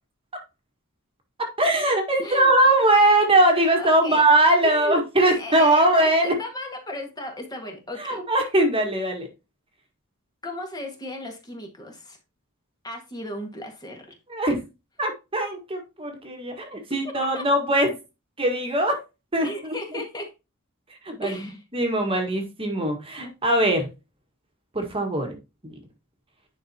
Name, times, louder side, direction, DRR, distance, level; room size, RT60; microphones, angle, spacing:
voice 1, 1.6-6.3 8.0-9.3 14.3-14.6 15.0-18.0 18.4-19.0 19.3-19.7 21.0-21.4 21.7-23.9 24.7-25.3 25.6-25.8, right 1 dB, 25° right, 1.6 m, -21 dB
voice 2, 2.2-2.5 3.8-4.3 4.6-8.2 10.4-12.2 12.8-14.1 17.1-17.4 19.4-20.3 21.2-21.6, left 1 dB, 20° left, 1.8 m, -35 dB
10.0 x 5.3 x 2.8 m
head